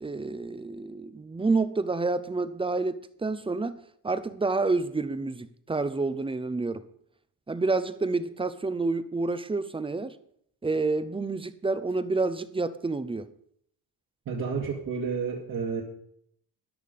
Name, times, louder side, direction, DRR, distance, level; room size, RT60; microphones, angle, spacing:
voice 1, 0.0-3.8 4.0-6.8 7.5-10.1 10.6-13.3, right 3 dB, 15° right, 0.6 m, -28 dB
voice 2, 14.3-15.8, right 5 dB, 55° right, 2.2 m, -30 dB
13.0 x 11.0 x 5.3 m
cardioid pair, 155°, 40 cm